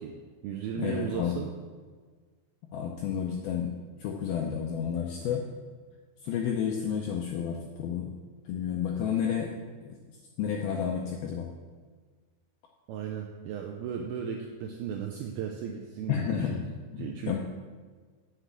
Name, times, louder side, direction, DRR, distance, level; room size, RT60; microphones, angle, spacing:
voice 1, 0.0-1.5 12.9-16.5 17.0-17.4, right 7 dB, 85° right, 2 dB, 2.2 m, -36 dB
voice 2, 0.8-1.3 2.7-3.7 4.0-5.4 6.2-8.1 8.5-9.5 9.8-9.9 10.4-11.5 16.1-16.7 16.9-17.4, left 8 dB, 80° left, 0 dB, 2.1 m, -31 dB
8.0 x 6.6 x 7.4 m, 1.5 s
omnidirectional pair, 5.1 m